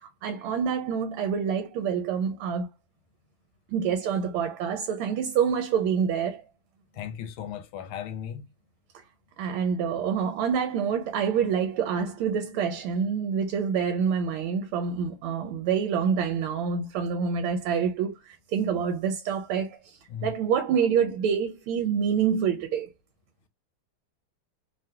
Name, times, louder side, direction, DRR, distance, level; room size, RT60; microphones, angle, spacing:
voice 1, 0.0-2.7 3.7-6.4 8.9-9.0 9.4-22.9, right 7 dB, 80° right, 1.4 m, -27 dB
voice 2, 6.9-8.5 20.1-20.3, left 9 dB, 85° left, 1.5 m, -36 dB
3.5 x 2.3 x 2.7 m
omnidirectional pair, 2.4 m